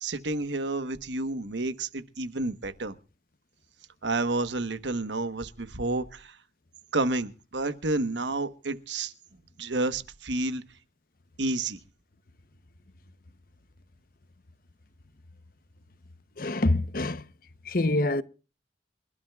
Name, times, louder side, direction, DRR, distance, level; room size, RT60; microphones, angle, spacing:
voice 1, 0.0-2.9 4.0-6.4 6.9-9.1 9.6-10.6 11.4-11.8, right 2 dB, 85° right, 1.2 m, -30 dB
voice 2, 16.4-17.2 17.7-18.2, left 2 dB, 50° left, 0.8 m, -25 dB
27.5 x 12.5 x 2.4 m
head